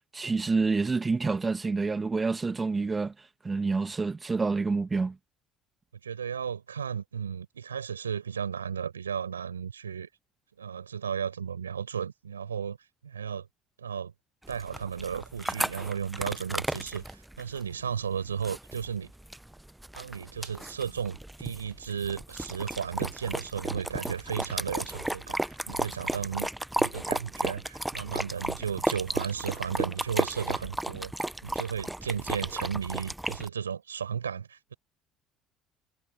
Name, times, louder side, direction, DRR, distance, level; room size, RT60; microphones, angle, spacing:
voice 1, 0.1-3.1 3.4-5.2, right 4 dB, 20° right, 2.5 m, -28 dB
voice 2, 6.0-10.1 10.6-12.8 13.0-13.5 13.8-14.1 14.5-19.1 19.9-26.5 26.8-31.1 31.4-34.7, right 7 dB, 80° right, 6.9 m, -34 dB
sound 1, 14.4-33.5, right 1 dB, 5° right, 1.1 m, -34 dB
figure-of-eight pair, 60°, 0 cm